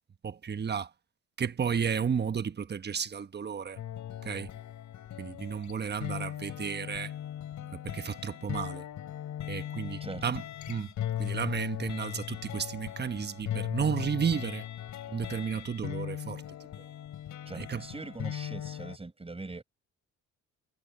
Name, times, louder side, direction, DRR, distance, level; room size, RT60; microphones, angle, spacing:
voice 1, 0.2-0.9 1.4-3.8 4.2-4.5 5.2-7.1 7.8-8.8 9.5-10.9 11.2-14.6 15.1-16.4 17.5-17.9, right 7 dB, 35° right, 1.2 m, -33 dB
sound 1, 3.8-19.0, left 11 dB, 70° left, 5.4 m, -38 dB
voice 2, 17.4-19.6, right 3 dB, 20° right, 5.1 m, -41 dB
cardioid pair, 90°, 30 cm